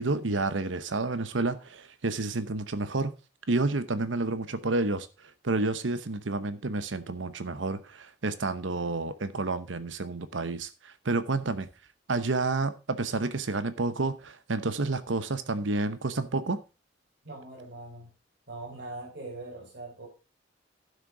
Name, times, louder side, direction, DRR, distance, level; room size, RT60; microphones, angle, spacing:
voice 1, 0.0-3.1 3.5-5.1 5.4-11.7 12.1-16.6, right 3 dB, 85° right, 0.9 m, -30 dB
voice 2, 17.2-18.1 18.5-20.1, right 2 dB, 60° right, 4.4 m, -41 dB
11.5 x 6.7 x 4.8 m
head